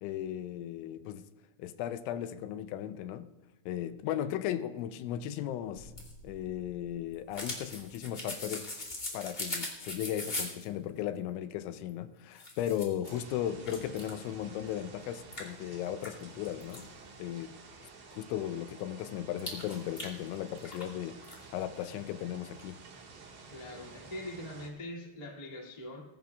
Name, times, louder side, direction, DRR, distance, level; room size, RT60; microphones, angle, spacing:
voice 1, 0.0-1.3 1.6-3.3 3.7-5.9 6.2-8.7 9.1-16.9 17.2-17.5 18.1-22.8, left 11 dB, 85° left, 2.9 m, -36 dB
sound 1, 5.8-10.7 11.9-12.0 12.3-13.2 13.6-14.2 14.7-14.8 15.3-16.8 19.4-20.9 21.2-21.3, left 2 dB, 25° left, 1.1 m, -40 dB
sound 2, 13.0-24.7, right 4 dB, 55° right, 2.5 m, -52 dB
voice 2, 23.5-26.0, left 1 dB, 55° left, 0.4 m, -43 dB
20.5 x 13.0 x 2.4 m
omnidirectional pair, 5.5 m